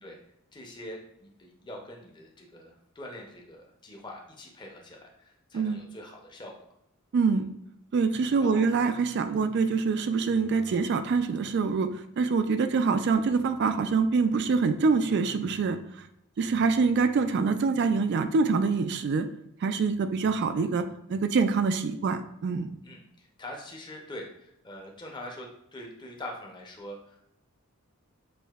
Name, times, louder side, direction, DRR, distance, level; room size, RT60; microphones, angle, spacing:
voice 1, 0.5-6.6 7.3-7.4 8.4-8.7 9.3-9.4 22.8-27.3, left 1 dB, 20° left, 0 dB, 0.6 m, -44 dB
voice 2, 5.5-5.9 7.1-7.5 7.9-16.1 16.4-19.3 19.6-22.7, right 4 dB, 50° right, 9 dB, 0.3 m, -25 dB
6.3 x 2.6 x 2.3 m, 0.76 s
head